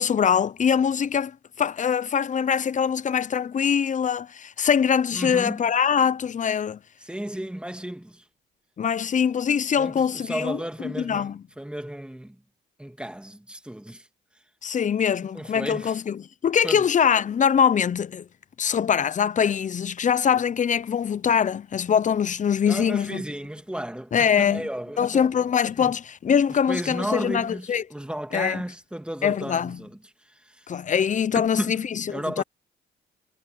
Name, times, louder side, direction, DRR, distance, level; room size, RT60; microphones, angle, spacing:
voice 1, 0.0-6.8 8.8-11.4 14.6-18.3 18.6-23.2 24.1-24.6 25.0-27.8 28.3-28.6 29.2-29.8 30.7-32.4, left 7 dB, 40° left, 0.7 m, -23 dB
voice 2, 5.1-5.7 7.0-8.2 9.8-12.4 12.8-14.1 15.3-16.0 16.6-16.9 22.7-25.3 25.8-25.9 26.7-30.0 30.2-30.7 31.3-32.4, right 1 dB, 5° right, 2.2 m, -34 dB
cardioid pair, 90°, 20 cm